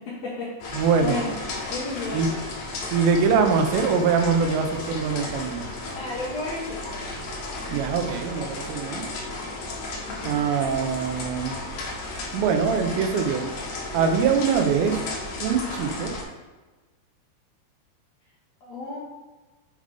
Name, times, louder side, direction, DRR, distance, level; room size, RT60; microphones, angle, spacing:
voice 1, 0.0-2.4 5.9-7.2 9.3-9.6 10.1-10.3 18.6-19.0, left 2 dB, 90° left, -6 dB, 1.5 m, -34 dB
sound 1, 0.6-16.2, left 2 dB, 70° left, 1.7 m, -34 dB
voice 2, 0.7-1.2 2.1-2.3 2.9-5.7 7.7-9.0 10.2-11.6 12.3-13.5 13.9-15.0 15.4-16.1, right 6 dB, 85° right, 5 dB, 3.0 m, -23 dB
7.9 x 3.4 x 5.2 m, 1.2 s
omnidirectional pair, 4.9 m